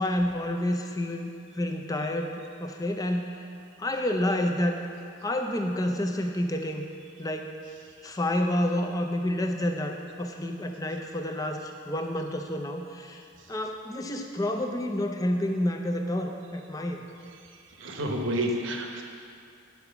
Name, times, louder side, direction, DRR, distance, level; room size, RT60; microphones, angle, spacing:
voice 1, 0.0-1.3 1.6-3.4 3.8-4.8 5.2-6.8 7.2-7.5 8.0-13.2 13.5-17.0, left 1 dB, 15° left, 4 dB, 0.5 m, -29 dB
voice 2, 17.5-19.0, right 1 dB, 70° right, 2 dB, 1.0 m, -30 dB
10.5 x 4.8 x 6.9 m, 2.4 s
head